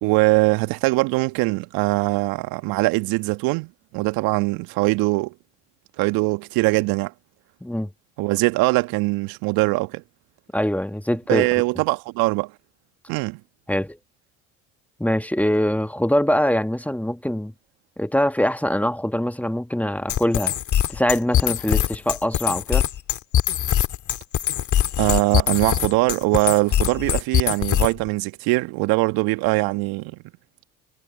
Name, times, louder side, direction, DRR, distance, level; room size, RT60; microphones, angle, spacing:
voice 1, 0.0-5.3 6.0-7.1 8.2-10.0 11.3-12.5 13.1-13.4 25.0-30.2, right 23 dB, 65° right, 1.5 m, -22 dB
voice 2, 10.5-11.5 13.7-14.0 15.0-17.5 18.0-20.5 20.9-22.9, equal, 5° left, 1.9 m, -23 dB
sound 1, 20.1-28.1, left 11 dB, 50° left, 2.6 m, -22 dB
hypercardioid pair, 60°, 38 cm